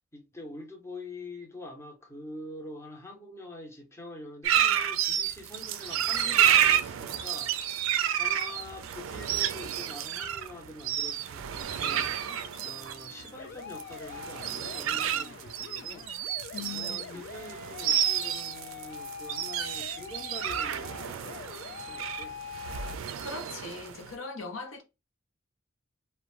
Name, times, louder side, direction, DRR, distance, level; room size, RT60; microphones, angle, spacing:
voice 1, 0.1-7.6 8.2-12.2 12.6-16.1 16.7-22.4, left 1 dB, 15° left, 0.6 m, -45 dB
sound 1, 4.4-24.1, right 10 dB, 80° right, 0.3 m, -30 dB
sound 2, 11.6-23.0, left 7 dB, 60° left, 0.3 m, -44 dB
voice 2, 16.5-17.2 23.2-24.8, left 4 dB, 80° left, 0.7 m, -40 dB
2.5 x 2.1 x 3.0 m
head